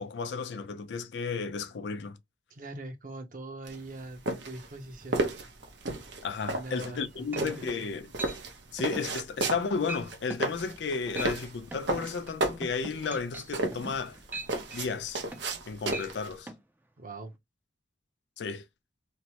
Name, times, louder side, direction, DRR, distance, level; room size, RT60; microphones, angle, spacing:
voice 1, 0.0-2.2 6.2-8.1 8.7-14.2 14.7-15.2 15.7-16.5 18.4-18.6, left 5 dB, 80° left, 0.5 m, -33 dB
voice 2, 2.5-5.2 6.5-7.9 17.0-17.3, right 2 dB, 50° right, 0.7 m, -42 dB
sound 1, 3.7-16.4, right 2 dB, 80° right, 0.8 m, -33 dB
sound 2, 6.9-7.0 7.3-7.7 8.2-8.4 8.8-9.1 9.5-9.6 9.9-10.0 10.3-10.5 11.0-11.4 11.7-15.6 15.9-16.1 16.5-16.6, right 1 dB, 10° right, 0.4 m, -41 dB
3.1 x 2.1 x 2.8 m
head